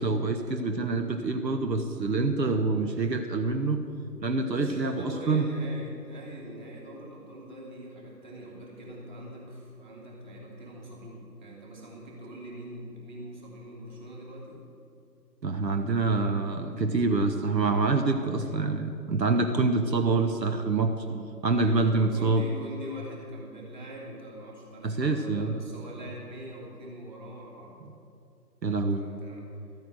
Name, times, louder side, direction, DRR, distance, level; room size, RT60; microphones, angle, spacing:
voice 1, 0.0-3.8 4.2-5.5 15.4-22.4 24.8-25.6 28.6-29.1, right 3 dB, 80° right, 6 dB, 1.3 m, -26 dB
voice 2, 4.5-14.6 21.6-27.7 28.9-29.4, right 1 dB, 30° right, -3 dB, 2.9 m, -43 dB
13.0 x 9.3 x 7.8 m, 2.5 s
figure-of-eight pair, 155°, 49 cm